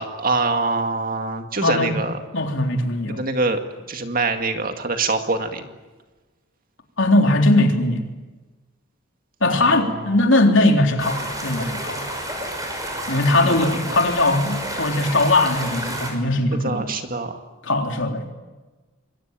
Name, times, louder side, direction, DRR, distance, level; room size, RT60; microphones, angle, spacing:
voice 1, 0.0-2.2 3.1-3.6 3.9-5.6 9.5-10.1 13.4-13.6 16.5-17.4, right 3 dB, 45° right, 6 dB, 2.2 m, -24 dB
voice 2, 1.6-2.0 2.3-3.2 7.0-8.0 9.4-12.0 13.1-16.8 17.6-18.2, left 2 dB, 65° left, 3 dB, 3.7 m, -19 dB
sound 1, 11.0-16.1, right 1 dB, 15° right, 6.1 m, -30 dB
27.5 x 22.5 x 9.1 m, 1.2 s
head